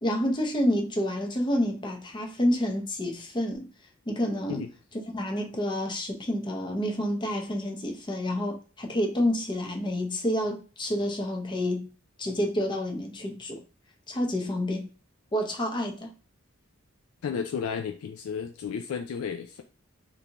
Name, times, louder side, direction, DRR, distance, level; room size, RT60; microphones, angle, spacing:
voice 1, 0.0-3.7 4.1-4.6 5.1-11.9 12.2-13.6 14.1-14.9 15.3-16.1, left 1 dB, 20° left, 0.6 m, -28 dB
voice 2, 17.2-19.6, left 6 dB, 85° left, 0.3 m, -33 dB
3.3 x 2.6 x 2.9 m
head